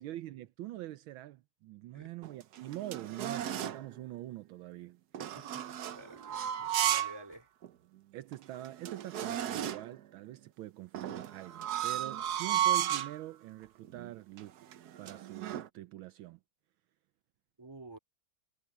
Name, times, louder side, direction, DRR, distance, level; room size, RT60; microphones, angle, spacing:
voice 1, 0.0-5.0 8.1-14.7 15.0-16.4, right 15 dB, 80° right, 1.4 m, -44 dB
sound 1, 2.2-3.9 5.1-7.2 7.6-7.7 8.3-8.4 8.6-10.0 10.9-13.2 13.8-14.1 14.4-15.7, right 11 dB, 60° right, 1.1 m, -34 dB
voice 2, 5.2-5.6 5.9-7.5 17.6-18.0, right 1 dB, 10° right, 2.6 m, -51 dB
omnidirectional pair, 2.3 m